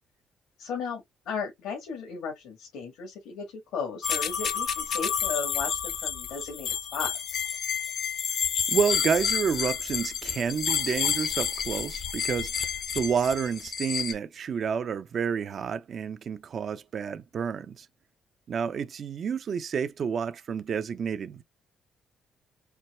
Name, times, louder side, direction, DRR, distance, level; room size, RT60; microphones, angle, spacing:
voice 1, 0.6-7.4, left 5 dB, 80° left, 1.7 m, -35 dB
sound 1, 4.0-14.1, left 7 dB, 60° left, 0.8 m, -30 dB
voice 2, 8.7-12.7 12.9-17.9 18.5-21.4, right 7 dB, 55° right, 0.5 m, -29 dB
4.4 x 2.2 x 4.2 m
cardioid pair, 85°, 0 cm